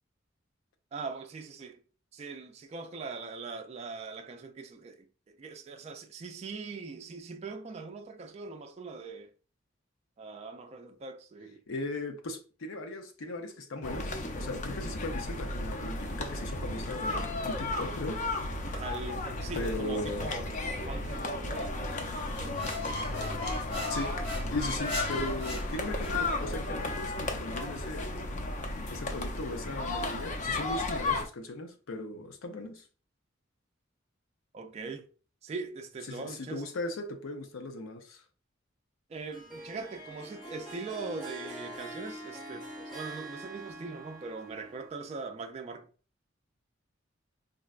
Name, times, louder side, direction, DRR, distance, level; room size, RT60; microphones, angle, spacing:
voice 1, 0.9-1.8 2.1-5.1 5.4-9.3 10.2-11.6 18.7-22.7 34.5-35.1 35.4-36.6 39.1-45.9, right 4 dB, 30° right, 0.3 m, -41 dB
voice 2, 11.7-18.2 19.5-20.3 23.9-24.1 24.5-28.5 28.9-32.9 36.0-38.2, left 2 dB, 85° left, 0.6 m, -38 dB
sound 1, 13.8-31.3, left 2 dB, 40° left, 0.4 m, -34 dB
sound 2, 22.3-26.3, left 1 dB, 70° left, 1.1 m, -38 dB
Harp, 39.3-45.1, right 1 dB, 5° right, 0.7 m, -44 dB
3.8 x 2.2 x 2.4 m
head